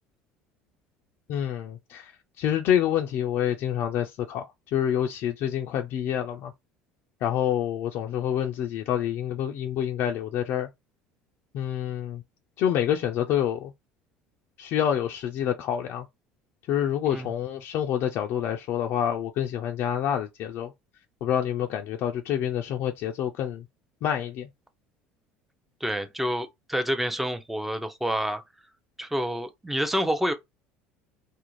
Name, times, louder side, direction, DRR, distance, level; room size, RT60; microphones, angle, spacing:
voice 1, 1.3-6.5 7.2-10.7 11.5-12.2 12.6-13.7 14.6-16.1 16.7-20.7 21.2-23.7 24.0-24.5, left 10 dB, 60° left, 0.4 m, -27 dB
voice 2, 25.8-28.4 29.0-30.3, equal, 5° right, 0.5 m, -28 dB
2.5 x 2.0 x 3.0 m
supercardioid pair, 100°, 4 cm